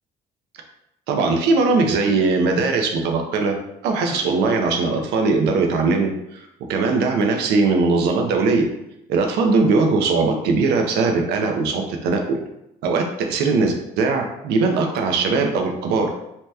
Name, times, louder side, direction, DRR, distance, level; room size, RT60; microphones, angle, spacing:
voice 1, 1.1-3.5 3.8-8.7 9.1-12.4 12.8-16.1, right 3 dB, 80° right, 3 dB, 0.5 m, -20 dB
2.8 x 2.2 x 3.3 m, 0.83 s
cardioid pair, 110°, 17 cm